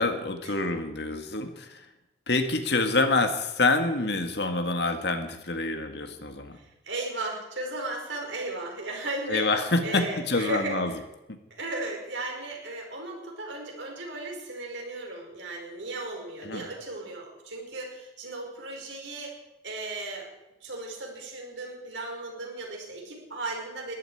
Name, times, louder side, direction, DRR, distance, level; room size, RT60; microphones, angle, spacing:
voice 1, 0.0-1.8 2.3-6.6 9.3-10.9 16.4-16.6, left 3 dB, 70° left, 7 dB, 1.9 m, -26 dB
voice 2, 6.5-11.0 11.6-19.3 19.6-20.3 20.6-23.9, right 2 dB, 90° right, 0 dB, 5.3 m, -36 dB
21.5 x 13.5 x 4.9 m, 0.97 s
head